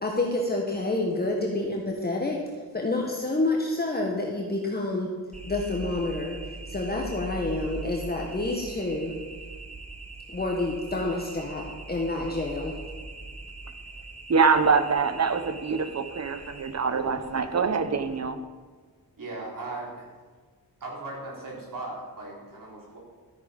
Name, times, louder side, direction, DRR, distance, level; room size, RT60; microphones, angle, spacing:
voice 1, 0.0-2.4 2.7-5.1 5.4-6.4 6.7-9.1 10.3-12.7, left 2 dB, 25° left, -1 dB, 1.4 m, -28 dB
sound 1, 5.3-18.2, right 3 dB, 20° right, 1.1 m, -41 dB
voice 2, 14.3-18.4, right 5 dB, 45° right, 10 dB, 1.0 m, -24 dB
voice 3, 19.2-20.1 20.8-23.0, right 2 dB, 60° right, -3 dB, 4.1 m, -38 dB
13.5 x 9.1 x 5.3 m, 1.5 s
wide cardioid pair, 130°, 37 cm